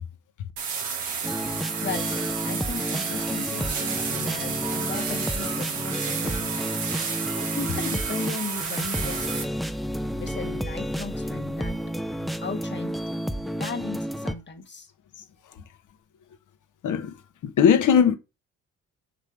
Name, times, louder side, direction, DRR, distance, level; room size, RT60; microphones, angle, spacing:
sound 1, 0.6-9.4, right 6 dB, 90° right, 1.3 m, -31 dB
sound 2, 1.2-14.3, equal, ahead, 0.6 m, -31 dB
voice 1, 1.8-6.7 7.3-9.5 10.2-11.8 12.4-13.0 13.6-14.9, left 4 dB, 30° left, 1.7 m, -36 dB
voice 2, 17.4-18.2, left 7 dB, 60° left, 1.0 m, -19 dB
7.5 x 3.3 x 5.1 m
hypercardioid pair, 50°, 36 cm